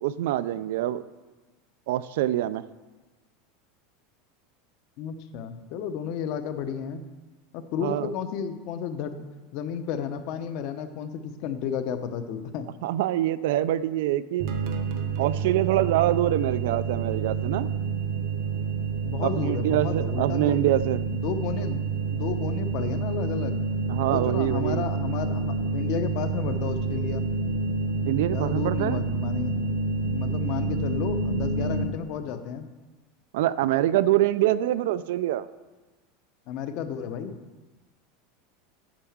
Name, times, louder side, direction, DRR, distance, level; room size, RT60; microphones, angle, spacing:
voice 1, 0.0-1.0 1.9-2.6 7.8-8.1 12.8-14.5 15.2-17.7 19.4-21.0 23.9-24.9 28.0-29.0 33.3-35.5, right 13 dB, 70° right, 16 dB, 0.3 m, -25 dB
voice 2, 5.0-7.0 7.5-9.2 9.5-12.7 19.0-20.6 21.1-23.6 24.1-27.3 28.3-29.5 30.1-32.7 36.5-37.4, left 8 dB, 45° left, 9 dB, 0.7 m, -32 dB
sound 1, 14.4-31.9, right 4 dB, 55° right, 0.9 m, -28 dB
8.8 x 4.7 x 7.1 m, 1.2 s
supercardioid pair, 165°, 0 cm